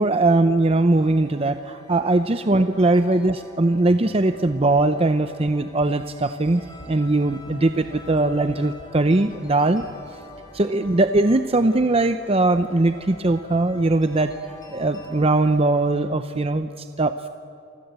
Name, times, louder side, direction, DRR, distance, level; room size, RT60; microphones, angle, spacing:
voice 1, 0.0-9.8 10.5-14.3 14.7-17.3, right 2 dB, 30° right, 9 dB, 0.7 m, -20 dB
sound 1, 0.9-16.0, left 2 dB, 20° left, 5.7 m, -45 dB
sound 2, 4.4-4.9 5.5-5.9 6.3-6.9 7.5-7.9 8.5-8.9 9.5-9.9, equal, 80° left, 5.1 m, -46 dB
28.5 x 24.5 x 8.2 m, 2.6 s
head